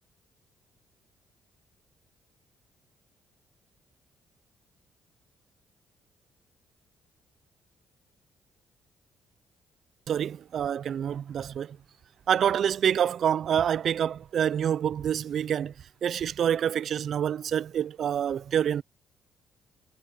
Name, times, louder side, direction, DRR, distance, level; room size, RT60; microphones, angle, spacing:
voice 1, 10.1-11.8 12.3-15.7 16.0-18.8, right 9 dB, 60° right, 0.4 m, -27 dB
cardioid pair, 90°, 0 cm